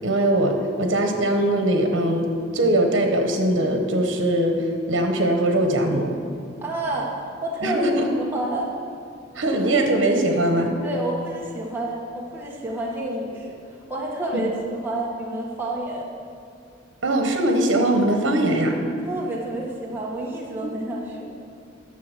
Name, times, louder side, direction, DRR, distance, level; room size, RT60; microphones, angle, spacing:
voice 1, 0.0-6.1 7.6-8.1 9.3-10.7 14.3-14.4 17.0-18.8 20.6-20.8, right 1 dB, 80° right, 4 dB, 1.0 m, -21 dB
voice 2, 6.6-7.9 8.2-8.7 10.8-13.6 13.9-16.1 19.0-21.3, right 1 dB, 10° right, -4 dB, 1.2 m, -29 dB
9.6 x 6.8 x 6.6 m, 2.5 s
head